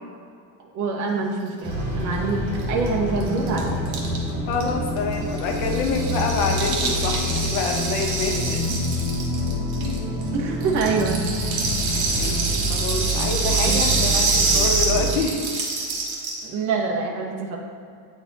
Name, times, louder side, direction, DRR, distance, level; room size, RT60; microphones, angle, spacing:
voice 1, 0.6-4.1 6.5-6.7 8.7-8.8 10.3-11.2 12.9-13.0 13.6-13.9 16.4-17.6, right 4 dB, 35° right, -1 dB, 1.0 m, -26 dB
sound 1, 1.6-15.2, equal, 10° right, 1.5 m, -27 dB
Rattle (instrument), 2.6-2.7 2.9-3.0 3.2-10.3 10.6-16.5, right 3 dB, 65° right, 1.6 m, -26 dB
voice 2, 4.5-8.6 9.8-10.2 11.8-15.4, left 4 dB, 75° left, 2 dB, 1.1 m, -27 dB
8.8 x 3.9 x 4.1 m, 2.3 s
cardioid pair, 165°, 49 cm